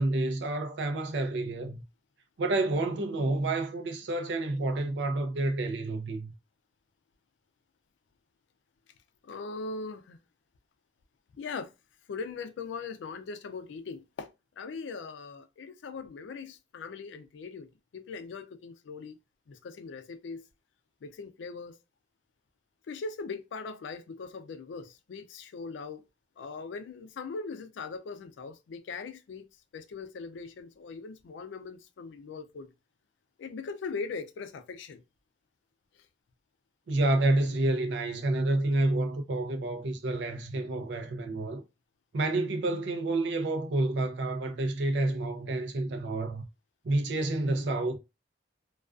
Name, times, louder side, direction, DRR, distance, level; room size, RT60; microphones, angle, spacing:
voice 1, 0.0-1.8 2.4-6.3 36.9-41.6 42.1-46.4 46.8-48.0, right 2 dB, 75° right, 0.5 m, -29 dB
voice 2, 9.2-10.2 11.4-11.7 12.1-14.3 14.6-17.7 17.9-19.2 19.5-20.4 21.0-21.8 22.9-26.0 26.4-29.4 29.7-32.7 33.4-35.0, left 4 dB, 85° left, 0.4 m, -40 dB
2.3 x 2.3 x 2.3 m
head